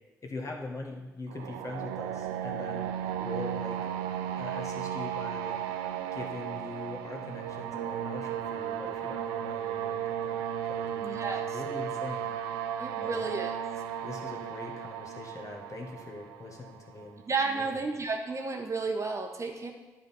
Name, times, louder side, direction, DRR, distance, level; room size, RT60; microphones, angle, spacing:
voice 1, 0.2-3.9 4.4-5.8 6.1-12.7 13.0-13.3 14.0-17.2 17.5-17.8, left 3 dB, 40° left, 1 dB, 1.6 m, -42 dB
sound 1, 1.3-17.1, right 9 dB, 75° right, 0.5 m, -35 dB
voice 2, 11.0-11.4 12.8-13.5 17.3-19.7, right 4 dB, 35° right, 3 dB, 1.2 m, -32 dB
10.5 x 4.0 x 5.7 m, 1.1 s
hypercardioid pair, 45°, 9 cm